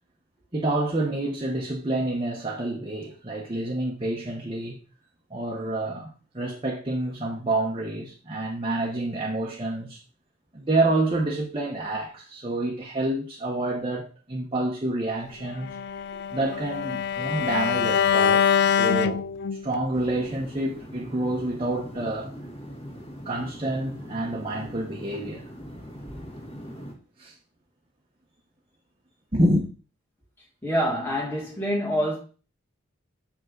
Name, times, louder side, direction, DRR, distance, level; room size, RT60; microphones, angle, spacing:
voice 1, 0.5-4.8 5.3-10.0 10.5-15.8 16.3-19.3 19.6-22.3 23.3-25.4 27.2-27.4 29.3-29.7, right 1 dB, 25° right, 0.9 m, -28 dB
Bowed string instrument, 15.6-19.8, left 7 dB, 50° left, 0.3 m, -24 dB
sound 1, 19.9-26.9, equal, 25° left, 1.9 m, -41 dB
voice 2, 30.6-32.2, equal, 10° left, 2.0 m, -26 dB
6.9 x 5.4 x 3.8 m
head